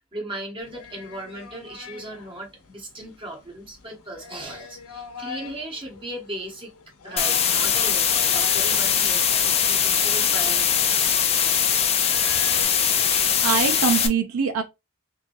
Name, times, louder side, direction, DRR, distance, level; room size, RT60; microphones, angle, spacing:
voice 1, 0.1-6.7 7.0-11.2, right 1 dB, 25° right, 1.1 m, -37 dB
sound 1, 0.6-12.6, left 5 dB, 85° left, 0.8 m, -42 dB
sound 2, 7.2-14.1, left 8 dB, 25° left, 0.4 m, -21 dB
voice 2, 13.1-14.6, right 6 dB, 70° right, 0.5 m, -24 dB
3.6 x 3.1 x 2.6 m
head